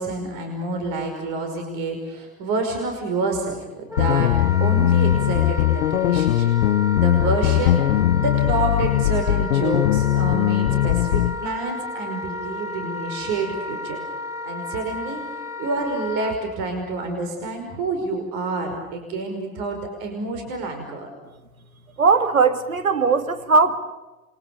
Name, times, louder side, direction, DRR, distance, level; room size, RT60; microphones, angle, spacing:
voice 1, 0.0-4.3 4.6-14.0 14.4-15.2 15.6-21.1, right 3 dB, 55° right, 4 dB, 5.4 m, -28 dB
Wind instrument woodwind instrument, 3.9-16.4, left 2 dB, 10° right, 4.2 m, -33 dB
sound 1, 4.0-11.3, left 12 dB, 75° left, 0.8 m, -20 dB
voice 2, 22.0-23.8, right 4 dB, 85° right, 10 dB, 2.0 m, -18 dB
28.5 x 23.5 x 7.0 m, 1.1 s
figure-of-eight pair, 70°, 40 cm